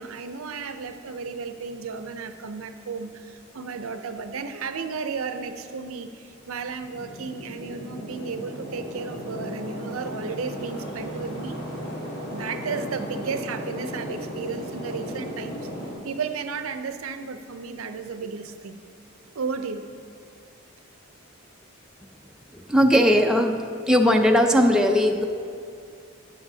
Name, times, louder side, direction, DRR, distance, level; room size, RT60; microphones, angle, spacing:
voice 1, 0.0-11.6 12.3-15.6 16.0-18.8 19.3-19.9, right 5 dB, 85° right, 9 dB, 0.6 m, -33 dB
sound 1, 6.5-15.9, equal, 45° left, 2.6 m, -35 dB
voice 2, 22.5-25.2, equal, 5° right, 2 dB, 0.5 m, -19 dB
13.0 x 9.6 x 2.7 m, 2.5 s
head